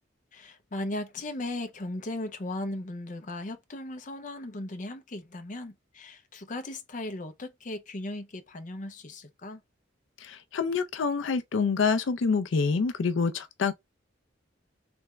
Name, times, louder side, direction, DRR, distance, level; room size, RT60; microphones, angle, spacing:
voice 1, 0.3-9.6, left 1 dB, 45° left, 0.7 m, -37 dB
voice 2, 10.2-13.7, left 5 dB, 80° left, 0.5 m, -27 dB
3.4 x 3.3 x 3.1 m
head